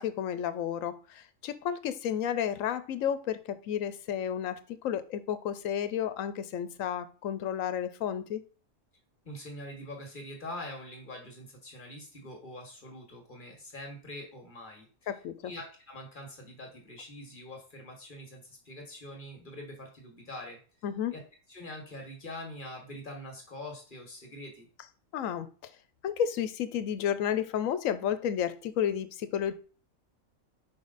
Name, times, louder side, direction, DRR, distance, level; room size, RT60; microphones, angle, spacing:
voice 1, 0.0-8.4 15.1-15.5 20.8-21.1 25.1-25.7 26.0-29.5, left 9 dB, 75° left, 13 dB, 1.0 m, -32 dB
voice 2, 9.2-15.1 15.4-20.6 21.1-21.2 21.5-24.7, left 1 dB, 40° left, 2 dB, 1.8 m, -44 dB
5.4 x 5.1 x 4.0 m, 0.38 s
omnidirectional pair, 1.4 m